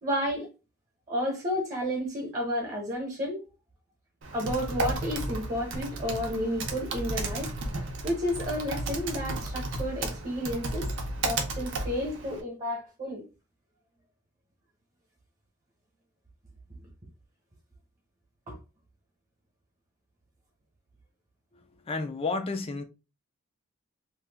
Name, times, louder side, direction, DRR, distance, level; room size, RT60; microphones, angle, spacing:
voice 1, 0.0-0.5 1.1-3.4 4.3-7.5 8.0-10.9 11.2-13.2 18.5-18.6, equal, 35° right, 1.0 m, -31 dB
Typing, 4.2-12.4, right 2 dB, 55° right, 0.7 m, -33 dB
voice 2, 21.5-22.8, left 3 dB, 25° left, 0.4 m, -32 dB
2.8 x 2.3 x 3.5 m
head